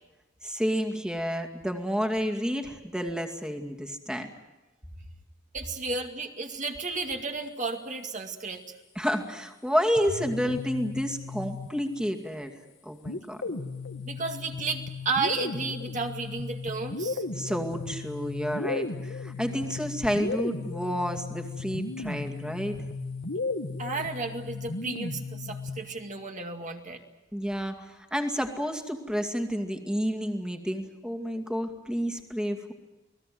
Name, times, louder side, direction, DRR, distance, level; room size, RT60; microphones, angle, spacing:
voice 1, 0.4-4.3 9.0-12.5 12.8-13.4 17.3-22.8 27.3-32.7, equal, 5° right, 4 dB, 2.3 m, -30 dB
voice 2, 5.5-8.6 14.0-17.2 23.8-27.0, right 3 dB, 40° right, 3 dB, 2.3 m, -33 dB
sound 1, 10.0-12.1 13.0-26.0, left 3 dB, 70° left, 1.4 m, -35 dB
29.5 x 20.0 x 7.8 m, 1.1 s
head